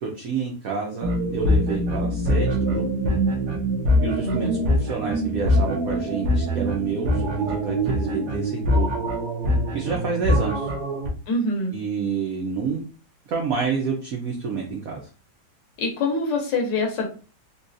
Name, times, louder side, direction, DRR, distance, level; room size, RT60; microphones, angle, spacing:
voice 1, 0.0-2.8 4.0-8.9 9.7-10.7 11.7-12.8 13.3-15.1, right 5 dB, 85° right, 0 dB, 0.7 m, -28 dB
sound 1, 1.0-11.1, equal, 65° right, 1.1 m, -23 dB
voice 2, 4.2-4.6 11.3-11.7 15.8-17.1, left 2 dB, 70° left, 2 dB, 1.2 m, -25 dB
3.9 x 2.3 x 2.5 m, 0.36 s
omnidirectional pair, 2.3 m